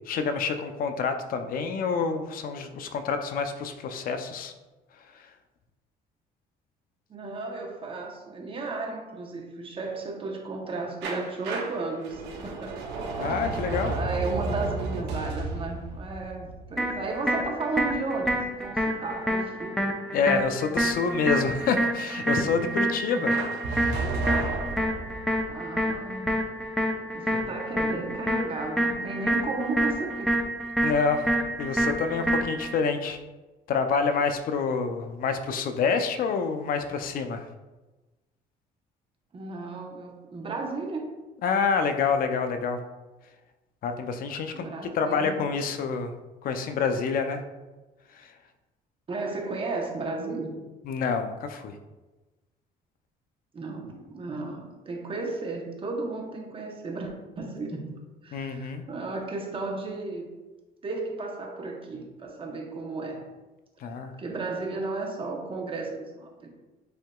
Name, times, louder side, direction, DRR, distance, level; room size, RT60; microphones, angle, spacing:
voice 1, 0.0-4.5 5.1-5.3 13.2-13.9 20.1-23.3 23.7-24.1 27.3-27.4 30.8-31.3 31.6-33.2 33.7-37.5 41.4-42.8 43.8-44.7 44.9-46.1 46.4-47.4 48.1-48.3 50.8-51.8 58.3-58.8 63.8-64.1, left 5 dB, 60° left, 7 dB, 0.5 m, -27 dB
voice 2, 7.1-12.8 13.2-19.8 23.1-23.3 25.5-26.3 27.1-30.3 39.3-41.1 44.5-45.5 49.1-50.6 53.5-57.9 58.2-60.3 60.8-63.3 64.2-66.5, right 3 dB, 30° right, 1 dB, 0.9 m, -34 dB
sound 1, 11.0-17.8 23.3-25.5, right 3 dB, 85° right, 0.7 m, -33 dB
sound 2, 16.8-32.8, right 1 dB, ahead, 0.6 m, -28 dB
7.5 x 2.8 x 2.3 m, 1.1 s
cardioid pair, 110°, 17 cm